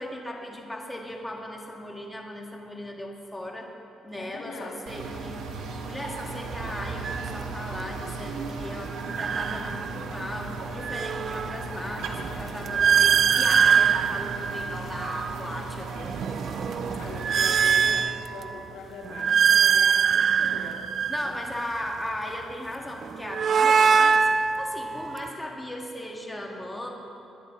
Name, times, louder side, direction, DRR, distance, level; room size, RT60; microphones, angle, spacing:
voice 1, 0.0-3.7 4.0-5.4 5.9-16.1 21.1-26.9, left 1 dB, 10° left, 0 dB, 1.9 m, -37 dB
voice 2, 4.2-4.8 17.0-20.8 21.2-21.4, left 3 dB, 85° left, -1 dB, 2.2 m, -41 dB
sound 1, 4.9-18.0, right 3 dB, 90° right, 1.5 m, -36 dB
sound 2, 7.0-7.3 9.0-10.2 10.6-15.4 16.0-18.6 19.0-22.0 23.0-25.3, right 6 dB, 55° right, 0.4 m, -23 dB
23.0 x 9.7 x 3.8 m, 2.8 s
cardioid pair, 90°, 0 cm